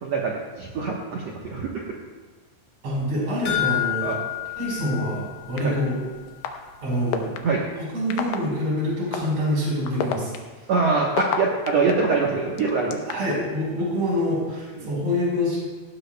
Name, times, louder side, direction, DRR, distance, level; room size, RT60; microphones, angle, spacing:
voice 1, 0.0-1.9 4.0-4.2 5.6-5.7 7.4-7.7 10.7-13.0 14.8-14.9, right 4 dB, 75° right, -2 dB, 1.5 m, -24 dB
voice 2, 2.8-4.1 4.6-6.0 6.8-7.3 7.8-10.7 13.0-15.6, left 1 dB, 40° right, -4 dB, 5.5 m, -26 dB
sound 1, 3.5-6.0 6.3-6.4 6.8-6.9, left 13 dB, 55° left, 3.0 m, -29 dB
sound 2, 5.6-5.7 6.4-6.5 7.1-7.4 8.1-8.4 9.1-9.2 9.9-11.9 12.6-13.4, left 9 dB, 70° left, 2.3 m, -27 dB
18.0 x 15.5 x 2.2 m, 1.4 s
omnidirectional pair, 4.6 m